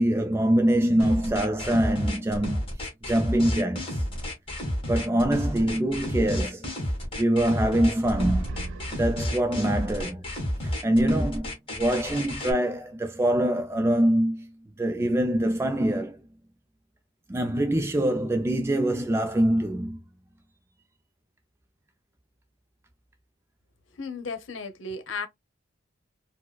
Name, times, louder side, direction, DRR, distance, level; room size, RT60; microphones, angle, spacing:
voice 1, 0.0-2.6 3.1-4.0 4.9-6.7 7.2-10.2 10.6-14.5 14.8-16.2 17.3-20.0, right 1 dB, 15° right, 0.3 m, -24 dB
sound 1, 1.0-12.5, equal, 30° left, 1.5 m, -30 dB
sound 2, 7.9-9.6, right 2 dB, 85° right, 0.4 m, -34 dB
voice 2, 23.9-25.3, left 4 dB, 85° left, 0.8 m, -34 dB
4.5 x 2.1 x 2.2 m
head